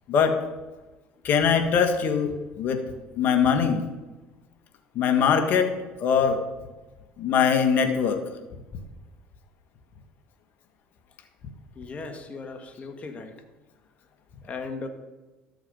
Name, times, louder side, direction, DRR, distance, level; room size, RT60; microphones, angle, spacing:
voice 1, 1.2-2.8 3.2-3.8 5.0-5.7 6.0-6.4 7.2-8.2, left 7 dB, 55° left, 6 dB, 1.8 m, -22 dB
voice 2, 11.7-13.3 14.4-14.9, left 4 dB, 35° left, 6 dB, 1.7 m, -37 dB
13.0 x 7.0 x 5.6 m, 1.1 s
supercardioid pair, 95°, 4 cm